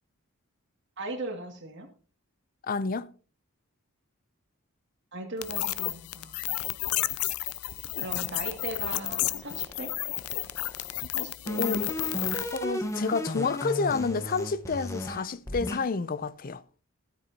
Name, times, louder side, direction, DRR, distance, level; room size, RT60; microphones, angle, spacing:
voice 1, 1.0-1.9 5.1-6.4 8.0-9.9 11.1-11.8, right 2 dB, 55° right, 2.3 m, -38 dB
voice 2, 2.7-3.1 11.6-11.9 12.5-16.6, left 4 dB, 40° left, 0.5 m, -29 dB
sound 1, 5.4-12.6, left 15 dB, 90° left, 0.5 m, -32 dB
sound 2, 8.0-11.0 11.5-15.8, equal, 15° left, 1.2 m, -35 dB
13.5 x 13.0 x 2.8 m
head